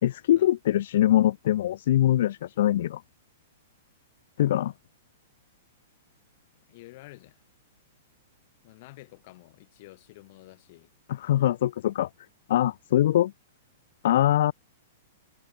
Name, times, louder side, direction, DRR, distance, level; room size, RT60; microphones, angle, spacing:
voice 1, 0.0-3.0 4.4-4.7 11.1-12.1 12.5-13.3 14.0-14.5, left 12 dB, 65° left, 1.1 m, -23 dB
voice 2, 6.7-7.4 8.6-10.9, left 20 dB, 50° left, 7.6 m, -49 dB
hypercardioid pair, 145°, 0 cm